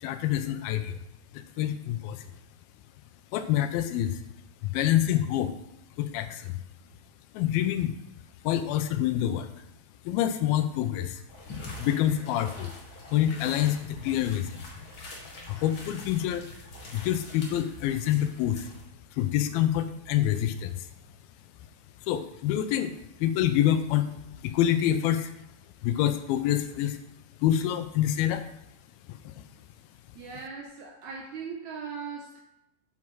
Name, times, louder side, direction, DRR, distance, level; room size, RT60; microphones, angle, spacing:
voice 1, 0.0-1.0 1.3-2.3 3.3-4.2 4.6-5.5 6.0-6.6 7.3-7.9 8.4-9.5 10.1-11.2 11.8-12.7 13.1-14.7 15.5-16.5 16.9-18.7 19.1-20.9 22.1-22.9 23.2-24.1 24.4-25.3 25.8-27.0 27.4-28.5 29.3-29.4, left 11 dB, 85° left, 10 dB, 2.5 m, -26 dB
sound 1, 11.3-18.8, left 2 dB, 45° left, 1.8 m, -44 dB
voice 2, 30.1-32.4, right 5 dB, 75° right, 1 dB, 1.8 m, -39 dB
7.4 x 7.4 x 4.7 m, 0.84 s
omnidirectional pair, 4.2 m